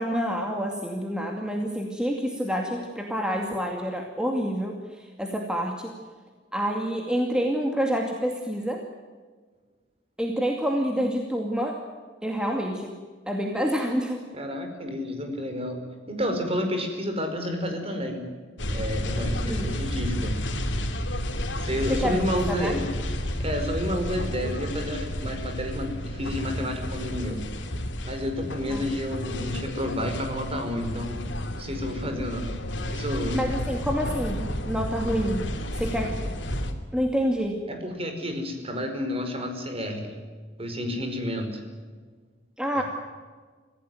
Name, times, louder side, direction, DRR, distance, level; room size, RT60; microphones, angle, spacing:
voice 1, 0.0-6.0 6.5-8.8 10.2-11.8 12.2-12.9 13.3-14.2 19.5-19.7 21.9-22.2 22.5-22.8 28.7-28.9 33.3-36.2 36.9-37.6 42.6-42.8, equal, 5° right, 1 dB, 2.4 m, -28 dB
voice 2, 14.3-15.8 16.1-18.2 18.7-20.3 21.5-22.8 23.4-27.4 28.0-31.2 31.5-32.5 32.9-33.3 37.7-40.2 40.6-41.6 42.7-42.8, equal, 30° right, 5 dB, 5.1 m, -30 dB
sound 1, 18.6-36.7, equal, 80° left, 2.9 m, -31 dB
25.5 x 16.5 x 9.2 m, 1.5 s
head